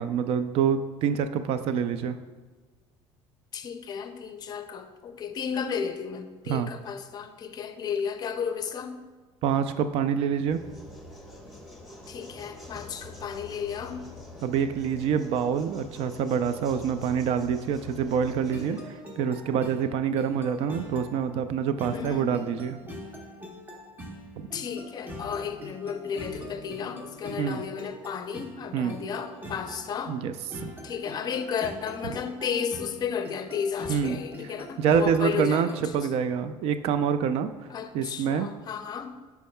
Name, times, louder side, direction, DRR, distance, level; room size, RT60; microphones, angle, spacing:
voice 1, 0.0-2.2 6.5-6.7 9.4-10.6 14.4-22.8 24.4-24.5 27.4-27.6 28.7-29.0 30.1-30.3 30.6-30.7 32.0-32.1 33.9-34.2 34.8-37.5 37.9-38.5, right 7 dB, 65° right, 10 dB, 0.4 m, -26 dB
voice 2, 3.5-9.0 12.1-14.1 21.9-22.3 24.5-30.2 30.8-36.2 37.7-39.2, left 7 dB, 40° left, 9 dB, 0.5 m, -33 dB
sound 1, 10.4-18.9, left 2 dB, ahead, 1.3 m, -45 dB
sound 2, 18.5-35.9, equal, 20° right, 1.1 m, -43 dB
10.5 x 4.6 x 2.2 m, 1.4 s
cardioid pair, 120°, 11 cm